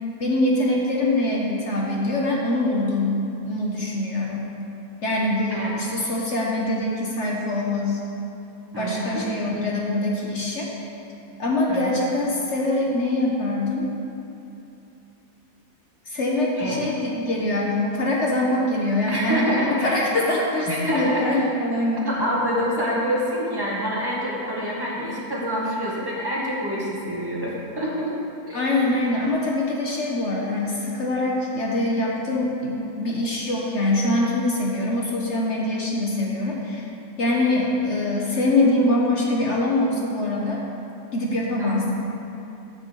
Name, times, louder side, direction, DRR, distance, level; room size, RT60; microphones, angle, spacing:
voice 1, 0.2-4.5 5.0-8.0 8.8-10.7 11.4-13.9 16.1-22.1 28.5-36.8 37.2-40.6 41.1-41.9, left 1 dB, 50° left, -3 dB, 1.2 m, -24 dB
voice 2, 8.7-9.3 11.7-12.1 16.6-16.8 19.1-20.0 20.7-21.4 22.0-28.2 28.5-28.6 41.6-41.9, equal, 15° right, -5 dB, 1.6 m, -27 dB
7.7 x 6.3 x 6.7 m, 2.9 s
omnidirectional pair, 1.7 m